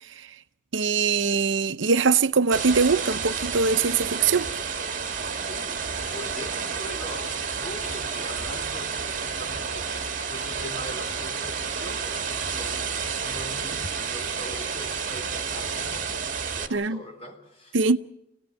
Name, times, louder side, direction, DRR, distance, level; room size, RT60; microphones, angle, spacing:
voice 1, 0.7-4.5 16.7-17.0 17.7-18.0, right 5 dB, 75° right, 0.8 m, -22 dB
sound 1, 2.5-16.7, right 5 dB, 40° right, 2.0 m, -30 dB
voice 2, 5.3-12.9 13.2-16.1 16.5-17.8, equal, 30° left, 3.9 m, -42 dB
26.5 x 17.5 x 7.7 m
head